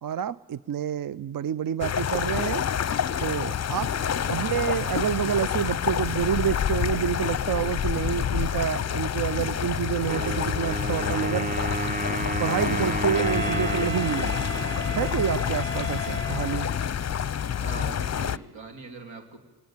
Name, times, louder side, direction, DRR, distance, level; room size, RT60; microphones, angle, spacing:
voice 1, 0.0-2.6 3.2-3.9 4.3-11.5 12.4-14.4 14.9-16.7, right 9 dB, 50° right, 18 dB, 0.6 m, -28 dB
sound 1, 1.8-18.4, left 8 dB, 35° left, 0.7 m, -28 dB
voice 2, 4.2-4.9 17.6-19.4, right 3 dB, 80° right, 5 dB, 3.5 m, -41 dB
Wind instrument woodwind instrument, 10.1-15.7, right 2 dB, 20° right, 1.3 m, -32 dB
Wind instrument woodwind instrument 2, 13.1-17.0, equal, 10° left, 1.0 m, -35 dB
21.0 x 18.5 x 9.0 m, 1.2 s
cardioid pair, 55°, 45 cm